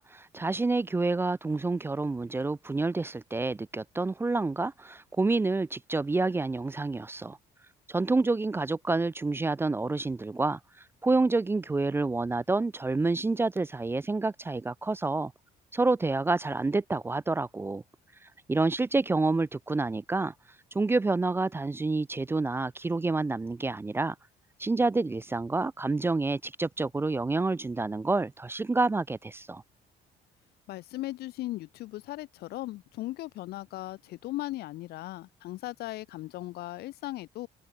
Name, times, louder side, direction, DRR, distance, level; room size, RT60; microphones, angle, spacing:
voice 1, 0.0-7.4 7.9-10.6 11.0-15.3 15.7-17.8 18.5-20.3 20.7-24.2 24.6-29.6, right 3 dB, 15° right, 0.4 m, -28 dB
voice 2, 30.7-37.5, left 17 dB, 70° left, 0.5 m, -37 dB
cardioid pair, 110°, 17 cm